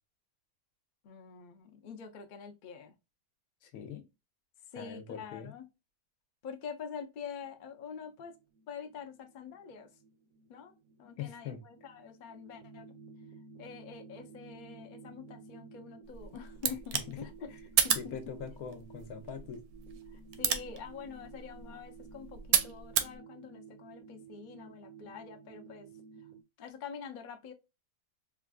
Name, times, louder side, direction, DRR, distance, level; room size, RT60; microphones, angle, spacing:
voice 1, 1.0-2.9 4.7-5.6 6.4-8.3 8.7-9.9 10.5-10.7 11.0-12.9 13.6-17.5 17.8-18.2 20.1-25.9 26.6-27.5, left 6 dB, 60° left, 0.5 m, -46 dB
voice 2, 3.6-4.0 4.8-5.5 11.2-11.6 16.9-17.6 17.9-19.6, left 7 dB, 80° left, 1.1 m, -43 dB
sound 1, 7.4-26.4, right 5 dB, 50° right, 0.6 m, -54 dB
sound 2, 16.1-23.2, right 9 dB, 80° right, 1.1 m, -34 dB
4.1 x 2.3 x 2.3 m
omnidirectional pair, 1.6 m